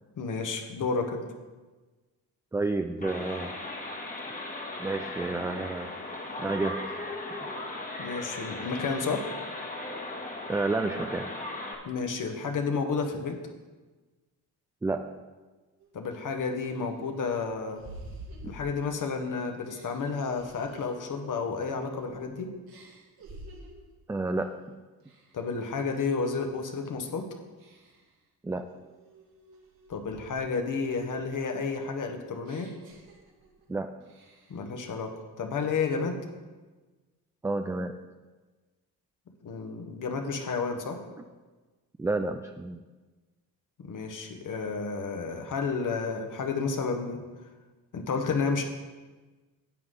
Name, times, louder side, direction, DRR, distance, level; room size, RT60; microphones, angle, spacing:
voice 1, 0.2-1.2 8.0-9.3 11.8-13.4 15.9-17.8 18.4-22.5 25.3-27.3 29.9-32.8 34.5-36.2 39.4-41.0 43.8-47.2 47.9-48.6, left 4 dB, 50° left, 5 dB, 1.3 m, -31 dB
voice 2, 2.5-3.6 4.8-5.9 6.4-7.0 7.3-7.5 10.5-11.3 14.8-15.2 18.4-18.6 24.1-24.8 28.4-28.7 33.7-34.0 37.4-38.0 42.0-42.8, right 3 dB, 10° right, 7 dB, 0.3 m, -30 dB
sound 1, 3.0-11.7, left 2 dB, 20° left, 1.5 m, -37 dB
sound 2, 15.8-15.9 16.4-19.2 19.6-22.3 22.7-23.9 24.4-24.7 25.0-26.3 26.7-27.1 27.6-28.2 28.7-30.6 31.0-33.7 34.0-34.7, right 2 dB, 65° right, 2.3 m, -50 dB
10.5 x 8.0 x 3.8 m, 1.3 s
cardioid pair, 75°, 39 cm